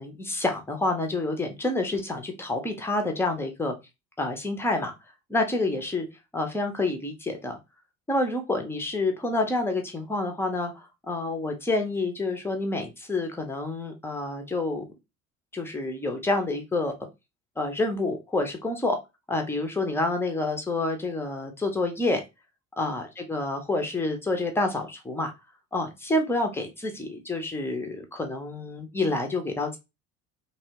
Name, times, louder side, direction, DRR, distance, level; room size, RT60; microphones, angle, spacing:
voice 1, 0.0-3.7 4.2-4.9 5.3-6.1 6.3-7.6 8.1-14.8 15.5-16.9 17.6-19.0 19.3-22.2 22.8-23.0 23.3-25.3 25.7-29.8, left 2 dB, 5° left, 4 dB, 0.4 m, -28 dB
2.8 x 2.0 x 2.8 m, 0.24 s
figure-of-eight pair, 55°, 43 cm